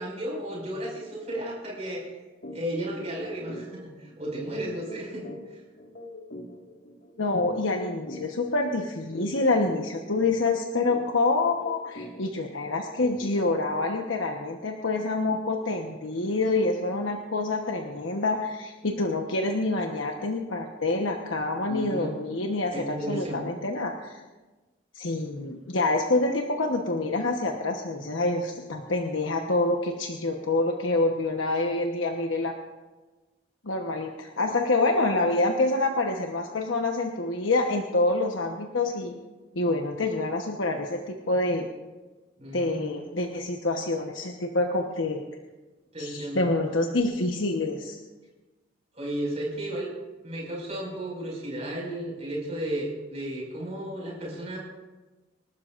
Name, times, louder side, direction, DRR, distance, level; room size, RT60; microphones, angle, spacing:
voice 1, 0.0-2.1 2.5-5.3 21.7-22.1 22.7-23.4 42.4-42.8 45.9-46.4 48.9-49.9 50.2-54.6, right 1 dB, 35° right, -3 dB, 5.7 m, -33 dB
sound 1, 2.4-2.6 3.0-3.1 3.5-13.7, equal, 55° left, 1.9 m, -43 dB
voice 2, 7.2-24.2 24.9-32.5 33.6-39.1 39.5-41.7 42.5-45.2 46.0-48.0, left 2 dB, 85° left, 2 dB, 1.1 m, -27 dB
27.0 x 12.5 x 2.5 m, 1.2 s
head